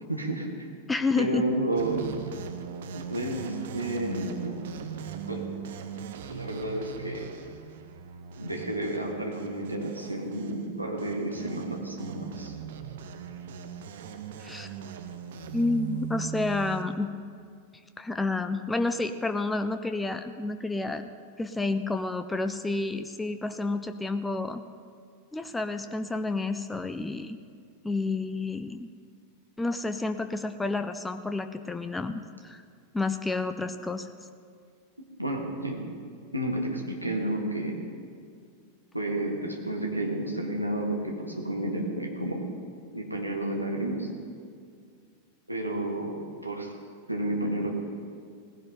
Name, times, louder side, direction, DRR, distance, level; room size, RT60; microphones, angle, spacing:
voice 1, 0.1-0.5 1.2-2.1 2.9-4.6 5.2-5.5 6.3-7.3 8.3-12.5 35.0-35.8 36.3-37.8 38.9-42.4 42.9-44.1 45.5-46.7 47.1-47.7, right 1 dB, 90° right, 0 dB, 2.0 m, -31 dB
voice 2, 0.9-1.5 14.4-14.7 15.5-17.1 18.0-21.1 21.4-24.6 25.3-27.4 27.8-28.9 29.6-32.6 32.9-34.1, left 3 dB, 10° left, 9 dB, 0.6 m, -30 dB
sound 1, 1.8-16.8, right 8 dB, 55° right, 1.0 m, -40 dB
18.0 x 16.0 x 3.9 m, 2.2 s
figure-of-eight pair, 90°, 0 cm